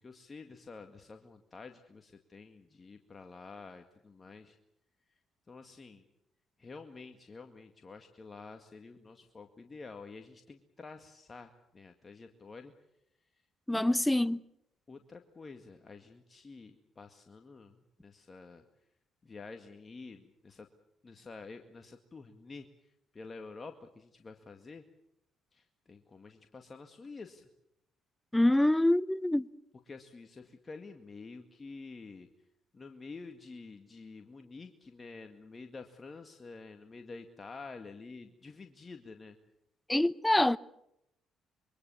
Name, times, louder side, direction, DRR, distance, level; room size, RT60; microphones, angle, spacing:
voice 1, 0.0-4.6 5.5-6.0 6.6-12.7 13.7-13.9 14.9-18.7 19.2-20.7 21.0-24.8 25.5-27.5 29.9-32.3 32.7-39.4, left 4 dB, 35° left, 2.0 m, -49 dB
voice 2, 13.7-14.4 28.3-29.5 39.9-40.6, left 1 dB, 10° left, 0.9 m, -25 dB
26.5 x 23.0 x 7.1 m
supercardioid pair, 60°, 0 cm